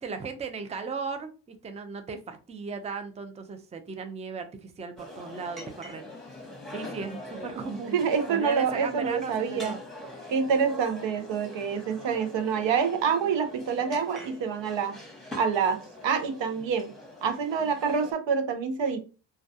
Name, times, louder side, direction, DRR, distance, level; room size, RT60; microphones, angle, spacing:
voice 1, 0.0-6.1 6.7-8.0 8.3-9.8, right 4 dB, 15° right, 7 dB, 0.4 m, -36 dB
sound 1, 5.0-18.1, left 1 dB, ahead, 0.9 m, -44 dB
voice 2, 7.9-9.8 10.3-15.0 15.3-16.9 17.2-19.0, right 6 dB, 80° right, 8 dB, 0.6 m, -27 dB
2.2 x 2.2 x 2.6 m, 0.33 s
cardioid pair, 70°, 44 cm